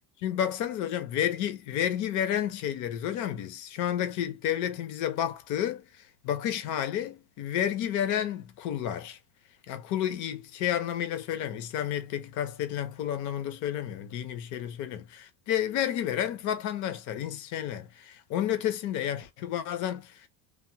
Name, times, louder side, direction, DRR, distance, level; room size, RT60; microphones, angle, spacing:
voice 1, 0.2-9.2 9.7-20.3, left 10 dB, 45° left, 0.6 m, -31 dB
3.4 x 2.1 x 2.7 m
cardioid pair, 175°, 45 cm